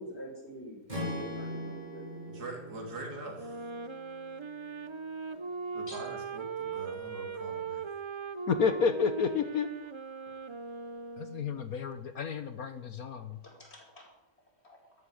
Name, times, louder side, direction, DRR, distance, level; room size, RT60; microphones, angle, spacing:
voice 1, 0.0-2.5 5.9-6.0 13.4-14.1 14.6-14.8, equal, 35° left, -1 dB, 5.4 m, -45 dB
Strum, 0.9-5.2, equal, 25° right, 4.9 m, -42 dB
voice 2, 2.3-3.7 5.7-8.0, right 2 dB, 65° right, 1 dB, 3.6 m, -43 dB
Wind instrument woodwind instrument, 3.3-11.7, right 5 dB, 50° right, 0.3 m, -39 dB
voice 3, 8.5-9.7 11.2-13.4, left 6 dB, 60° left, 10 dB, 1.5 m, -30 dB
13.0 x 12.0 x 8.6 m, 0.91 s
omnidirectional pair, 1.8 m